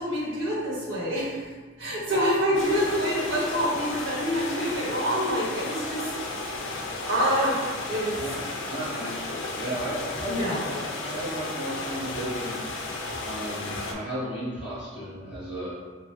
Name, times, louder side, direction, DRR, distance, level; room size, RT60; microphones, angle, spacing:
voice 1, 0.0-1.5 1.8-6.0 7.0-7.6 7.9-8.2 10.3-10.6, equal, 75° right, -5 dB, 0.9 m, -26 dB
sound 1, 2.5-13.9, left 2 dB, 80° left, 0.4 m, -34 dB
voice 2, 8.7-12.8 13.2-15.8, right 1 dB, 5° right, -15 dB, 1.2 m, -35 dB
3.1 x 2.0 x 3.1 m, 1.4 s
head